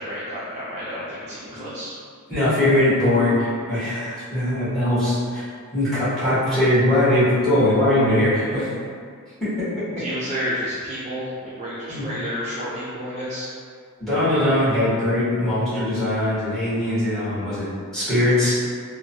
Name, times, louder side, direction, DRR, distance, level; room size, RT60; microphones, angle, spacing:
voice 1, 0.0-1.9 10.0-13.5 14.3-14.5, equal, 30° right, -9 dB, 0.4 m, -30 dB
voice 2, 2.3-5.4 5.7-8.7 9.4-9.5 11.9-12.1 14.0-17.7 17.9-18.5, left 1 dB, ahead, -13 dB, 1.2 m, -21 dB
2.9 x 2.2 x 2.7 m, 2.1 s
head